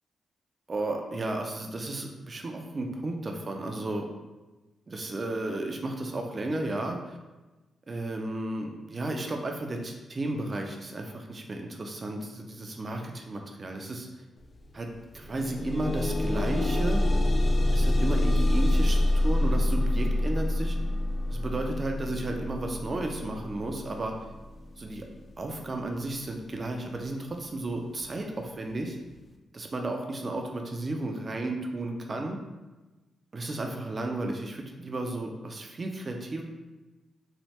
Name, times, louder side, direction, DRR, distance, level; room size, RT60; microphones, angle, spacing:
voice 1, 0.7-4.1 4.9-7.2 7.9-14.1 14.7-14.9 15.1-17.0 17.7-20.8 21.3-24.1 24.8-25.1 25.4-29.0 29.5-32.4 33.3-36.4, right 2 dB, 35° right, 2 dB, 0.4 m, -33 dB
sound 1, 14.4-14.6 14.9-25.9 26.7-26.8 27.3-27.4, left 1 dB, 40° left, 0.3 m, -27 dB
3.1 x 2.1 x 2.8 m, 1.1 s
cardioid pair, 85°, 0 cm